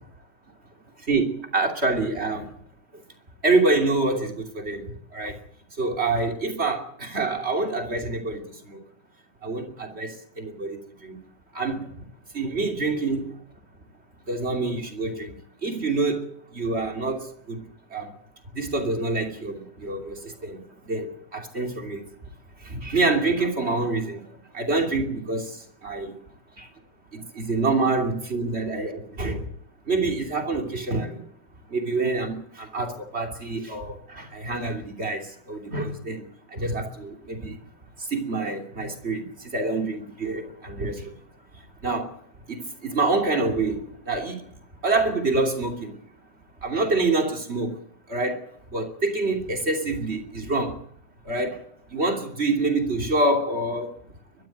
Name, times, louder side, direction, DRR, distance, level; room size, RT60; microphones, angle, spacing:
voice 1, 1.0-2.5 2.9-3.0 3.4-5.4 5.8-8.8 9.4-11.2 11.5-12.1 12.3-13.4 14.3-15.4 15.6-18.1 18.5-22.1 22.6-26.2 26.6-26.7 27.1-29.5 29.8-31.3 31.7-37.6 38.0-41.1 41.8-42.2 42.5-44.4 44.8-46.0 46.6-50.8 51.2-54.0, right 3 dB, 20° right, 2.5 m, -27 dB
22.0 x 13.5 x 9.3 m
omnidirectional pair, 4.2 m